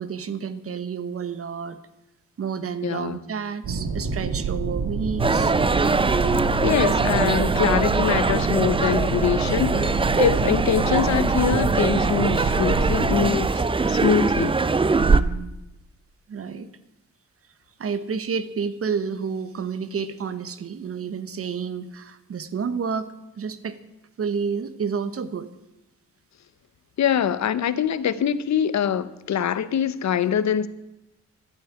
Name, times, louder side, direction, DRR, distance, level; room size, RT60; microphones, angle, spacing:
voice 1, 0.0-1.8 2.4-5.5 15.0-15.5 16.3-16.7 17.8-23.8 24.2-25.5, right 6 dB, 50° right, 1.0 m, -30 dB
voice 2, 2.8-3.2 6.6-14.6 27.0-30.7, left 8 dB, 70° left, 0.8 m, -24 dB
sound 1, 3.6-13.3, right 3 dB, 90° right, 1.8 m, -27 dB
sound 2, 5.2-15.2, right 4 dB, 20° right, 0.5 m, -22 dB
12.0 x 8.5 x 9.8 m
wide cardioid pair, 165°, 29 cm